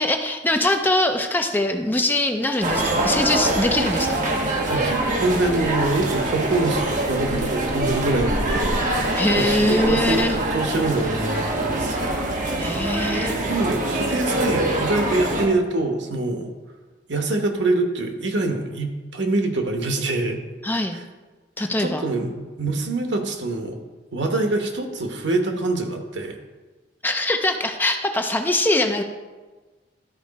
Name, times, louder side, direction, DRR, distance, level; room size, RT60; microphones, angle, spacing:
voice 1, 0.0-4.6 9.1-10.4 12.6-13.3 20.6-21.0 21.6-22.0 27.0-29.0, left 1 dB, 10° left, 5 dB, 0.5 m, -22 dB
sound 1, 2.6-15.5, right 1 dB, 45° right, 1.2 m, -24 dB
voice 2, 4.7-10.2 10.5-12.2 13.1-16.5 17.1-20.4 21.8-22.3 22.6-23.8 24.1-26.4, right 2 dB, 85° right, 4 dB, 1.2 m, -25 dB
12.5 x 4.8 x 4.2 m, 1.3 s
head